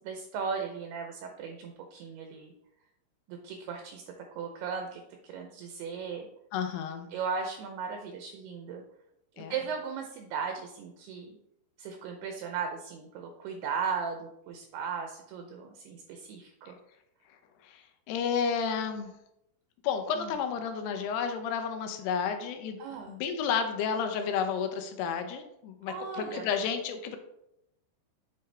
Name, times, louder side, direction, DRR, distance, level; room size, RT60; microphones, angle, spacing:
voice 1, 0.0-2.5 3.3-4.0 4.3-6.3 7.1-8.8 9.4-11.4 11.8-16.8 20.1-20.3 22.8-23.2 25.9-26.5, right 6 dB, 80° right, 4 dB, 2.5 m, -37 dB
voice 2, 6.5-7.1 9.4-9.5 17.6-19.1 19.8-22.8 23.1-27.2, left 6 dB, 80° left, 6 dB, 2.6 m, -31 dB
7.8 x 5.7 x 3.3 m, 0.82 s
omnidirectional pair, 4.9 m